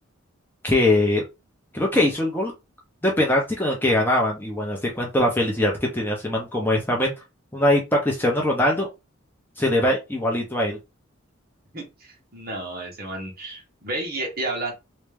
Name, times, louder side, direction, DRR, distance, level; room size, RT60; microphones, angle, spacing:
voice 1, 0.6-1.2 1.7-2.5 3.0-7.1 7.5-8.9 9.6-10.8, left 1 dB, 10° left, -1 dB, 0.7 m, -22 dB
voice 2, 11.7-14.7, right 2 dB, 45° right, -1 dB, 1.5 m, -31 dB
3.2 x 2.7 x 3.4 m, 0.24 s
head